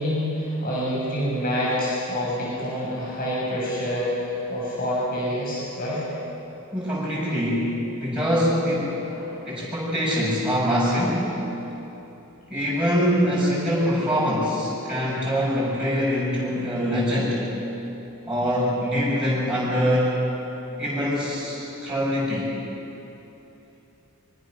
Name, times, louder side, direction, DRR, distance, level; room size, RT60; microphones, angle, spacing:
voice 1, 0.0-6.1 9.0-9.5, equal, 40° left, -6 dB, 7.4 m, -27 dB
voice 2, 6.7-8.9 9.4-11.3 12.5-17.4 18.3-20.2 20.8-22.5, equal, 5° right, -9 dB, 7.3 m, -24 dB
25.0 x 25.0 x 6.6 m, 3.0 s
head